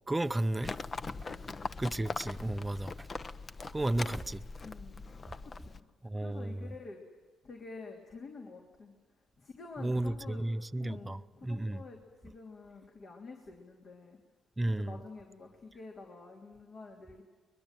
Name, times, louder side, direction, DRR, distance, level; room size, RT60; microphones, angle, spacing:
voice 1, 0.1-0.7 1.8-3.1 3.7-4.4 6.0-6.7 9.8-11.8 14.6-15.0, right 1 dB, 15° right, 0.7 m, -33 dB
Livestock farm animals working animals, 0.6-5.8, left 4 dB, 35° left, 1.0 m, -41 dB
voice 2, 1.1-1.6 2.5-2.6 4.0-4.2 4.6-5.0 5.4-5.8 6.1-7.0 7.4-8.9 9.4-10.4 10.8-14.2 14.7-17.2, left 3 dB, 50° left, 3.3 m, -48 dB
23.0 x 21.5 x 9.1 m
cardioid pair, 90°, 0 cm